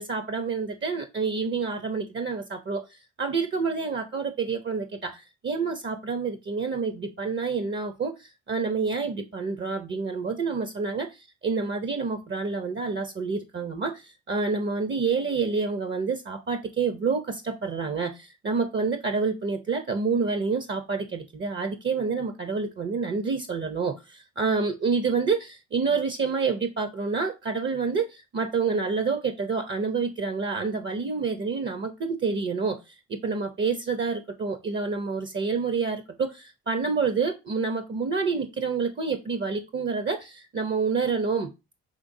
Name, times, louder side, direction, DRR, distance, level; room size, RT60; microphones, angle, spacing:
voice 1, 0.0-11.1 11.4-41.5, right 4 dB, 40° right, 0.7 m, -28 dB
5.1 x 3.3 x 2.6 m
cardioid pair, 90°, 30 cm